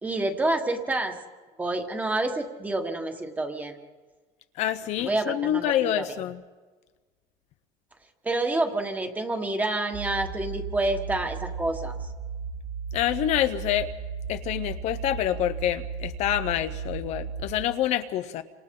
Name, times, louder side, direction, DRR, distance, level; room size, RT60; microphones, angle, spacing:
voice 1, 0.0-1.2 1.6-3.8 5.0-6.0 8.2-11.9, right 2 dB, 10° right, 5 dB, 1.5 m, -28 dB
voice 2, 4.6-6.4 12.9-13.9 14.3-18.4, left 12 dB, 50° left, 10 dB, 0.7 m, -27 dB
sound 1, 9.9-17.7, right 5 dB, 55° right, 4.5 m, -35 dB
29.5 x 26.0 x 3.8 m, 1.4 s
cardioid pair, 175°, 15 cm